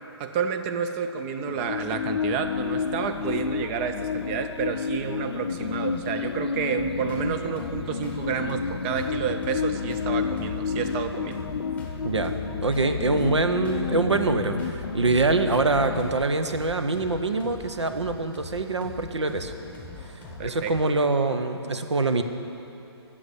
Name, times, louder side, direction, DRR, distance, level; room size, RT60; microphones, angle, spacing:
voice 1, 0.2-11.4 20.4-20.9, right 7 dB, 25° right, 8 dB, 0.5 m, -30 dB
sound 1, 1.5-16.2, left 6 dB, 65° left, 0.5 m, -31 dB
sound 2, 6.8-20.8, left 1 dB, 10° left, 1.3 m, -41 dB
voice 2, 12.0-19.5 20.4-22.2, right 3 dB, 85° right, 7 dB, 0.8 m, -24 dB
7.8 x 7.0 x 8.4 m, 2.9 s
figure-of-eight pair, 135°, 14 cm